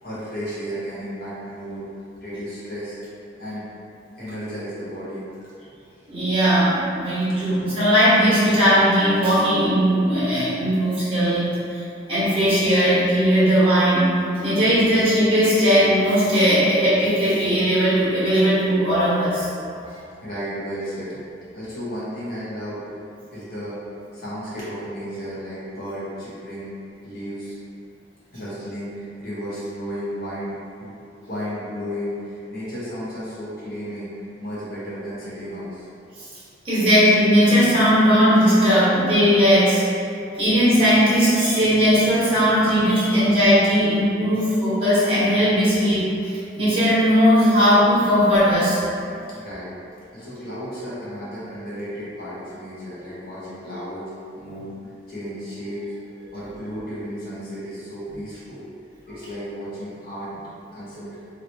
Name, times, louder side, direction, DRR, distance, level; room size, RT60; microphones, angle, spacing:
voice 1, 0.0-1.8 2.2-3.0 3.4-3.7 4.2-5.2 19.7-21.2 21.5-22.8 23.3-23.8 24.1-26.7 27.0-27.6 28.3-30.5 30.8-30.9 31.3-34.1 34.4-35.9 49.3-49.7 50.1-54.0 54.3-54.7 55.1-55.9 56.3-58.6 59.1-60.3 60.7-61.1, equal, 60° left, -10 dB, 1.2 m, -33 dB
voice 2, 6.1-11.8 12.1-14.2 14.4-19.5 36.6-39.8 40.4-48.8, equal, 30° right, -11 dB, 1.2 m, -18 dB
3.0 x 3.0 x 2.8 m, 2.5 s
head